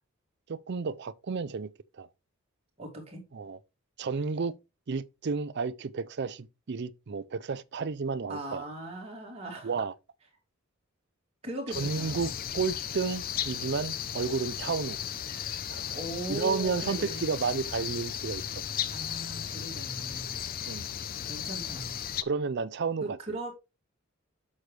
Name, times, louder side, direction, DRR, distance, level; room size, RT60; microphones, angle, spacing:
voice 1, 0.5-1.7 2.0-2.1 3.3-3.6 4.0-4.6 4.9-8.6 9.6-9.9 11.8-15.0 15.7-15.9 16.3-18.4 20.7-20.9 22.2-23.0, right 4 dB, 55° right, 0.5 m, -32 dB
voice 2, 2.8-3.2 8.3-9.8 11.4-12.3 15.9-17.3 18.9-20.4 21.2-22.0 23.0-23.5, right 2 dB, 30° right, 2.8 m, -39 dB
sound 1, 11.7-22.2, left 9 dB, 45° left, 0.5 m, -35 dB
8.0 x 6.6 x 3.3 m
head